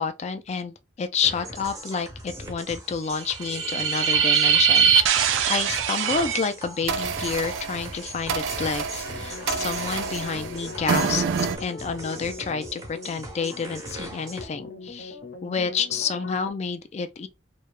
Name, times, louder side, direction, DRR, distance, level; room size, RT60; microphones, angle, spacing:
voice 1, 0.0-11.3 11.6-17.3, left 5 dB, 35° left, 0.3 m, -29 dB
sound 1, 1.2-14.5, right 1 dB, 20° right, 0.5 m, -40 dB
sound 2, 3.3-6.5 6.9-11.6, right 7 dB, 80° right, 0.4 m, -24 dB
sound 3, 9.0-16.5, left 4 dB, 65° left, 0.7 m, -41 dB
2.2 x 2.0 x 3.0 m
head